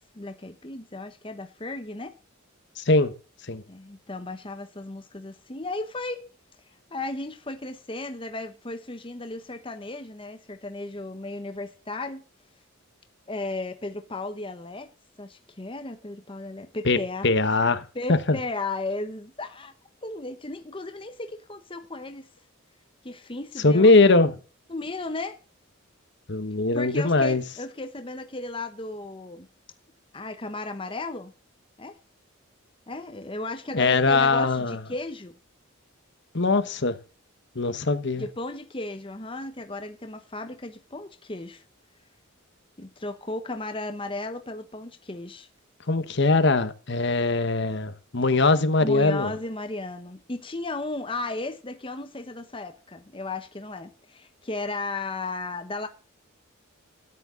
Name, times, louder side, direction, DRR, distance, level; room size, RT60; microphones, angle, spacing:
voice 1, 0.1-2.2 3.7-6.3 6.9-12.2 13.3-14.9 15.2-17.3 17.9-19.7 20.0-22.3 23.0-23.9 24.7-25.4 26.7-29.5 30.1-31.3 31.8-32.0 32.9-35.3 38.2-41.6 42.8-45.5 48.8-55.9, left 2 dB, 25° left, 1.0 m, -35 dB
voice 2, 2.8-3.1 3.5-3.6 16.8-17.0 17.2-17.8 18.1-18.4 23.6-24.4 26.3-27.4 33.7-34.8 36.3-36.9 37.5-38.3 45.9-49.3, left 3 dB, 55° left, 1.2 m, -21 dB
13.5 x 10.0 x 3.8 m
head